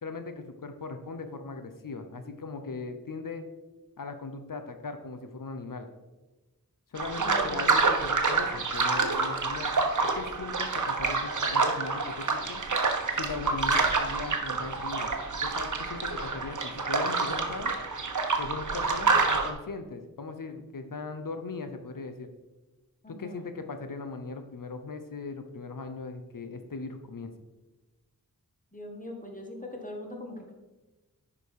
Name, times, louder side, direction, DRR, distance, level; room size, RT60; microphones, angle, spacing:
voice 1, 0.0-3.5 4.0-5.9 6.9-12.6 13.2-15.1 15.4-17.7 18.4-22.3 23.1-27.3, left 3 dB, 65° left, 8 dB, 0.9 m, -39 dB
sound 1, 7.0-19.5, right 4 dB, 55° right, 1.0 m, -27 dB
voice 2, 7.2-7.7 23.0-23.4 28.7-30.5, left 1 dB, 20° left, 1 dB, 1.8 m, -41 dB
10.0 x 5.0 x 4.8 m, 1.1 s
wide cardioid pair, 80°, 35 cm